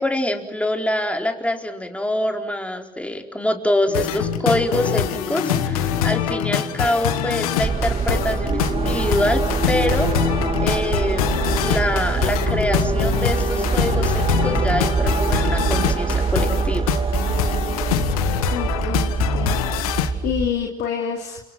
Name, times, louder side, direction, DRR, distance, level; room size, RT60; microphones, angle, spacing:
voice 1, 0.0-10.1 10.6-11.3 11.6-16.9, left 1 dB, 5° left, 4 dB, 4.3 m, -25 dB
sound 1, 3.9-20.1, left 12 dB, 80° left, 1.5 m, -25 dB
sound 2, 3.9-15.9, left 3 dB, 45° left, 4.9 m, -31 dB
sound 3, 7.6-20.5, right 5 dB, 30° right, 1.9 m, -24 dB
voice 2, 18.5-19.7 20.0-21.4, left 8 dB, 65° left, 1 dB, 3.0 m, -28 dB
30.0 x 26.0 x 6.2 m, 0.77 s
hypercardioid pair, 60°, 18 cm